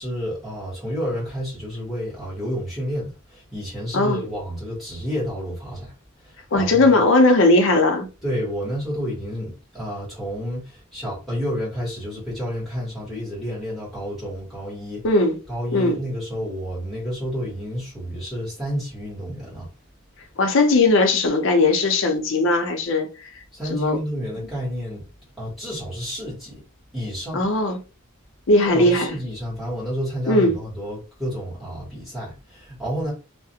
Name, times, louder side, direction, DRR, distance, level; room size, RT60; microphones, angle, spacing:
voice 1, 0.0-5.9 6.2-7.0 8.2-15.0 15.5-19.7 23.5-25.0 25.4-26.6 26.9-27.4 28.6-33.1, equal, ahead, 1.1 m, -30 dB
voice 2, 6.5-8.1 15.0-15.4 15.7-16.0 20.4-23.3 23.7-24.0 24.4-24.5 27.3-27.8 28.5-29.2 30.3-30.6, left 2 dB, 60° left, 0.5 m, -18 dB
2.4 x 2.0 x 2.7 m
head